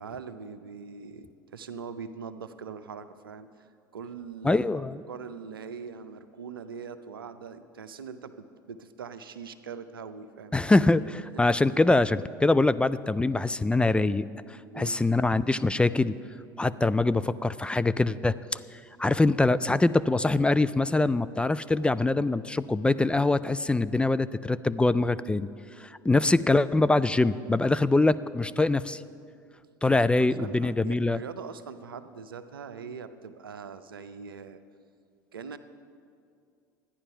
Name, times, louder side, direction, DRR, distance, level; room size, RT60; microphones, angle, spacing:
voice 1, 0.0-10.6 11.3-11.4 14.7-15.0 30.2-34.6 35.3-35.6, right 6 dB, 90° right, 11 dB, 0.6 m, -42 dB
voice 2, 4.4-5.0 10.5-16.2 16.6-18.6 19.0-25.5 25.8-29.0 29.8-31.2, left 2 dB, 10° left, 14 dB, 0.3 m, -24 dB
12.5 x 9.9 x 5.6 m, 2.4 s
hypercardioid pair, 75°, 11 cm